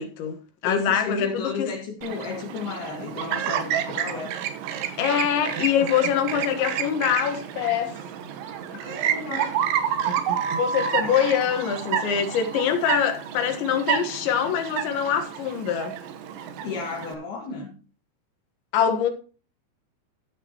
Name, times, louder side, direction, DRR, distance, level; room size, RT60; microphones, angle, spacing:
voice 1, 0.0-1.7 5.0-8.0 10.6-16.0 18.7-19.1, left 8 dB, 80° left, 3.8 m, -24 dB
voice 2, 0.6-4.3 8.7-9.6 11.0-11.2 16.6-17.7, left 4 dB, 65° left, 3.7 m, -33 dB
Chirp tweet, 2.0-17.2, right 9 dB, 85° right, 3.6 m, -31 dB
sound 1, 9.4-13.1, right 8 dB, 65° right, 2.5 m, -28 dB
14.5 x 8.6 x 3.0 m
omnidirectional pair, 5.2 m